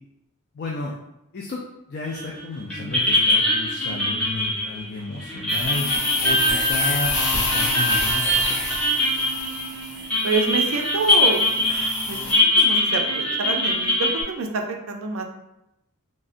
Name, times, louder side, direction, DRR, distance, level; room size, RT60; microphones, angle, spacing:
voice 1, 0.5-0.9 1.3-1.6 1.9-5.9 6.2-8.6, left 3 dB, 45° left, -2 dB, 0.3 m, -32 dB
sound 1, 2.1-2.4 2.7-14.2, left 1 dB, 5° left, 0.6 m, -22 dB
sound 2, 5.5-12.3, left 2 dB, 80° left, 1.1 m, -28 dB
voice 2, 10.2-14.6 14.9-15.2, right 4 dB, 65° right, 3 dB, 0.4 m, -27 dB
3.6 x 2.0 x 2.5 m, 0.87 s
head